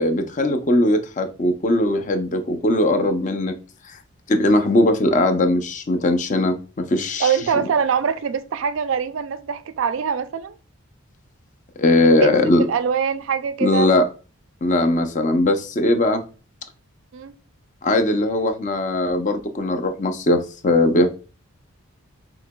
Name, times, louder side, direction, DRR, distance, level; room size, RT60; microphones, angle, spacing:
voice 1, 0.0-3.5 3.9-4.0 4.3-7.4 11.8-12.6 13.6-14.0 14.6-16.2 17.8-21.1, left 1 dB, 35° left, 0.5 m, -19 dB
voice 2, 7.2-10.6 12.0-12.3 12.6-13.9 17.1-17.3, right 7 dB, 65° right, 0.3 m, -23 dB
6.3 x 2.9 x 2.2 m
head